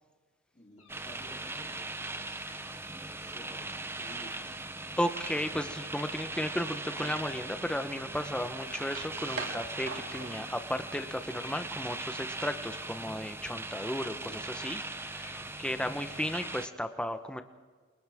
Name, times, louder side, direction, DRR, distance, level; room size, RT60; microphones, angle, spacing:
voice 1, 0.5-2.4 3.2-4.5 15.3-15.6, equal, 30° left, -1 dB, 3.3 m, -53 dB
sound 1, 0.8-1.8 2.3-2.8 3.5-3.7 4.1-4.5 5.1-5.6 6.2-6.7 7.2-7.6 8.1-8.7 9.3-10.6 11.2-12.0 12.6-13.1 13.7-14.3 15.1-15.7 16.2-16.7, left 6 dB, 90° left, 2.8 m, -57 dB
sound 2, 0.9-16.7, right 2 dB, 10° right, 0.6 m, -40 dB
voice 2, 5.0-17.4, equal, 5° left, 7 dB, 0.9 m, -35 dB
sound 3, 5.3-10.5, right 3 dB, 65° right, 2.5 m, -45 dB
28.5 x 27.5 x 3.6 m, 1.5 s
head